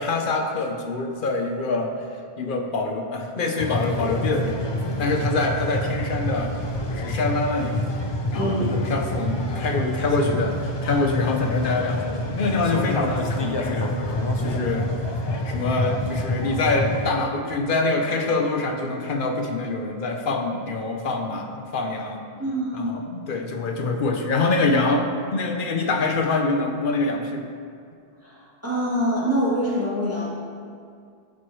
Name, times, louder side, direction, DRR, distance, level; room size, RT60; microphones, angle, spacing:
voice 1, 0.0-1.9 2.4-4.6 5.0-6.5 6.9-7.9 8.3-14.0 14.4-14.9 15.5-22.2 22.7-25.1 25.3-27.4, left 3 dB, 60° left, 3 dB, 0.8 m, -25 dB
sound 1, 3.6-17.1, left 1 dB, 35° left, 0.4 m, -27 dB
voice 2, 8.3-8.7 22.4-22.8 28.2-30.2, equal, 15° right, -7 dB, 1.1 m, -25 dB
10.5 x 4.5 x 3.1 m, 2.3 s
omnidirectional pair, 1.1 m